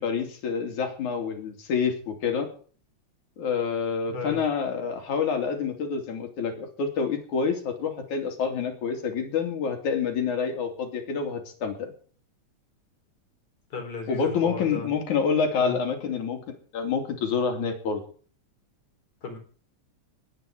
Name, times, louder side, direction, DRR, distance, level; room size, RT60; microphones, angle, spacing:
voice 1, 0.0-2.5 3.4-11.9 14.1-18.0, left 6 dB, 85° left, 4 dB, 4.1 m, -27 dB
voice 2, 4.1-4.4 13.7-14.9 15.6-15.8 19.2-19.4, left 4 dB, 70° left, 3 dB, 5.3 m, -34 dB
20.5 x 9.3 x 4.9 m, 0.43 s
omnidirectional pair, 3.4 m